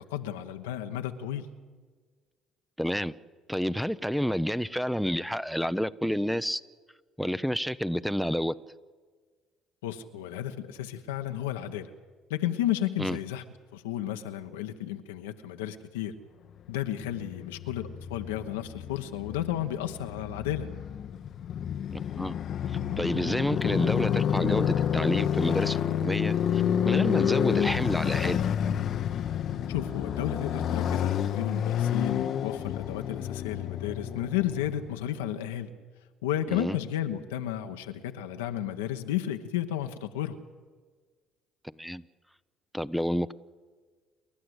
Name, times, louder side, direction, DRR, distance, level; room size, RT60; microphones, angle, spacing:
voice 1, 0.0-1.5 9.8-11.9 12.3-13.4 13.7-16.1 16.7-20.7 29.7-35.7 36.2-40.4, left 11 dB, 85° left, 1.1 m, -33 dB
voice 2, 2.8-3.1 3.5-6.6 7.2-8.5 13.0-13.2 21.9-22.4 22.7-28.4 36.5-36.8 41.6-42.0 42.7-43.3, equal, ahead, 0.7 m, -29 dB
Motorcycle, 16.9-35.0, left 9 dB, 60° left, 0.8 m, -29 dB
29.0 x 11.5 x 8.0 m
hypercardioid pair, 60°, 0 cm